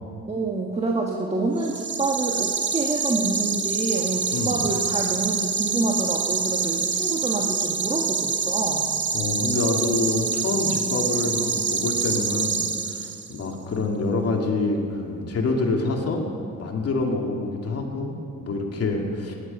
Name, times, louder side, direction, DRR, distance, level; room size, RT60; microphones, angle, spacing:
voice 1, 0.3-8.9, right 3 dB, 20° right, 1 dB, 1.5 m, -27 dB
sound 1, 1.6-13.4, right 5 dB, 40° right, 1.4 m, -26 dB
voice 2, 4.3-4.6 9.1-12.6 12.9-16.3 16.6-19.3, left 3 dB, 55° left, 1 dB, 2.4 m, -26 dB
17.5 x 11.0 x 5.4 m, 2.4 s
cardioid pair, 90°, 30 cm